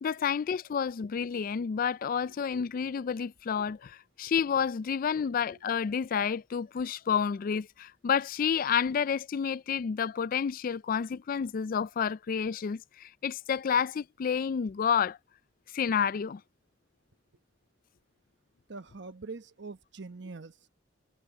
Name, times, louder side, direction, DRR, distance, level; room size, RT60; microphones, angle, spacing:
voice 1, 0.0-15.2 15.7-16.4, left 7 dB, 50° left, 0.3 m, -30 dB
voice 2, 18.7-20.7, right 3 dB, 65° right, 1.0 m, -44 dB
head